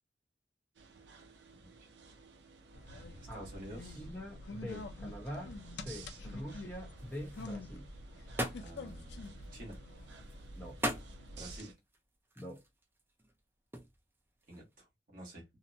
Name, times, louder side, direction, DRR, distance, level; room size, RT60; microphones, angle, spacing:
sound 1, 0.7-11.7, right 4 dB, 75° right, 0.5 m, -57 dB
sound 2, 2.7-11.6, left 2 dB, 70° left, 0.5 m, -47 dB
voice 1, 2.9-4.1 8.6-9.8 11.3-11.7 14.5-14.9 15.1-15.4, right 1 dB, 50° right, 1.2 m, -49 dB
voice 2, 4.0-7.9 10.6-10.8 12.4-12.6, equal, 10° left, 0.9 m, -44 dB
sound 3, 7.0-14.8, right 1 dB, 15° right, 0.5 m, -43 dB
2.8 x 2.1 x 2.6 m
head